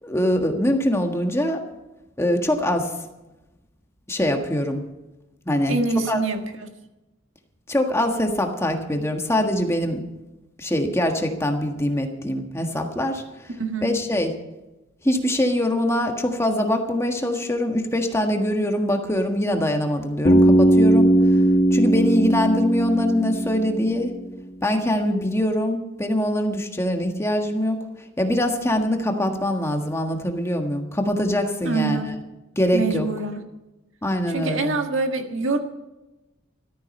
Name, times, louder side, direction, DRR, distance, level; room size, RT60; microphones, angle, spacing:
voice 1, 0.0-1.6 2.2-2.9 4.1-4.8 5.4-6.2 7.7-10.0 10.6-13.5 13.8-14.4 15.0-21.4 21.7-24.1 24.6-27.8 28.2-32.2 32.5-33.1 34.0-34.7, left 1 dB, 15° left, 3 dB, 1.5 m, -23 dB
voice 2, 5.7-6.7 13.6-13.9 31.6-32.1 32.7-33.4 34.3-35.6, right 3 dB, 80° right, 4 dB, 1.7 m, -25 dB
Bass guitar, 20.2-24.2, right 1 dB, 40° left, 1.4 m, -18 dB
14.0 x 13.5 x 5.4 m, 1.0 s
head